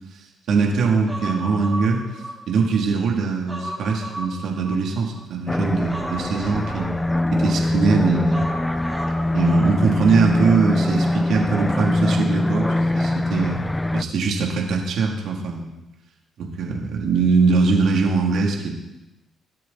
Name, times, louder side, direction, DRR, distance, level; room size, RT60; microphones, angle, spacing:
voice 1, 0.5-2.0 2.5-7.0 7.3-8.4 9.3-13.6 13.9-15.7 16.4-18.7, right 4 dB, 70° right, 0 dB, 3.3 m, -21 dB
Human voice, 1.1-2.9 3.2-5.2 5.9-7.7 8.3-10.2 10.5-10.6, right 1 dB, 10° right, 4.9 m, -35 dB
sound 1, 5.5-14.0, left 1 dB, 10° left, 0.4 m, -22 dB
22.5 x 9.3 x 4.4 m, 0.97 s
cardioid pair, 90°, 0 cm